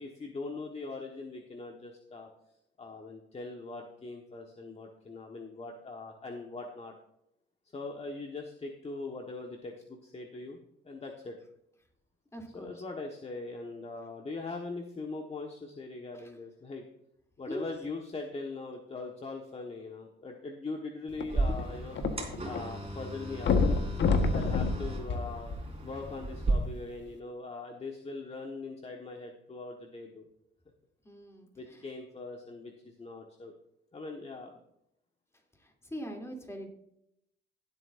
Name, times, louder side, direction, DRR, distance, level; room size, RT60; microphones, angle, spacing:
voice 1, 0.0-2.3 2.8-6.9 7.7-10.6 10.8-11.4 12.5-16.8 17.4-23.8 24.3-25.5 25.8-30.2 31.6-33.5 33.9-34.6, left 3 dB, 30° left, 2 dB, 1.4 m, -41 dB
voice 2, 12.3-12.8 16.1-16.4 17.5-17.7 31.0-31.9 35.5-36.7, equal, 15° left, 1 dB, 2.9 m, -43 dB
sound 1, 21.1-22.6 22.9-23.0 23.4-26.0 26.7-26.8, left 4 dB, 65° left, 1.3 m, -28 dB
sound 2, 21.3-26.5, right 2 dB, 30° right, 3.5 m, -35 dB
16.5 x 8.1 x 2.6 m, 0.77 s
cardioid pair, 90°, 20 cm